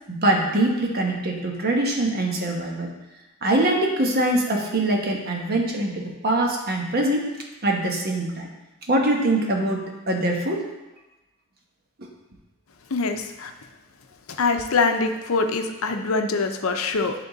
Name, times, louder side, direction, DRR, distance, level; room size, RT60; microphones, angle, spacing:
voice 1, 0.1-2.9 3.4-7.3 7.6-8.5 8.9-10.7, right 1 dB, 45° right, 1 dB, 1.1 m, -23 dB
voice 2, 12.9-13.5 14.3-17.1, left 4 dB, 75° left, 6 dB, 0.6 m, -24 dB
10.5 x 3.7 x 4.0 m, 1.0 s
head